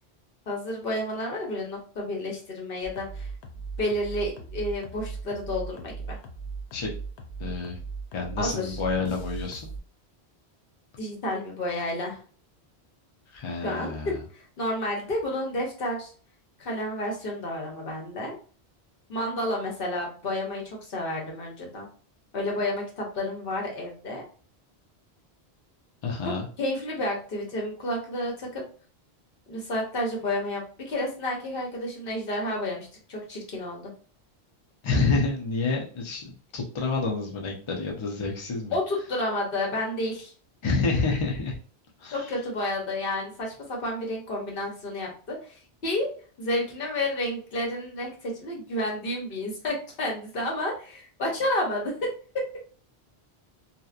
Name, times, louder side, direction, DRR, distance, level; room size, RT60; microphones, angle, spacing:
voice 1, 0.5-3.3 3.8-6.2 8.4-8.8 11.0-12.2 13.6-16.1 16.6-18.4 19.1-21.9 22.3-24.2 26.2-26.3 26.6-28.6 29.5-33.9 38.7-40.3 42.1-46.1 46.4-52.1 52.3-52.5, left 1 dB, 60° left, -1 dB, 1.0 m, -30 dB
sound 1, 2.8-9.8, right 4 dB, 85° left, 0.8 m, -38 dB
voice 2, 7.4-7.8 8.1-9.7 13.3-14.2 26.0-26.5 34.8-38.7 40.6-41.6 42.0-42.3, left 3 dB, 40° left, -1 dB, 0.4 m, -28 dB
2.8 x 2.0 x 2.4 m, 0.42 s
omnidirectional pair, 1.1 m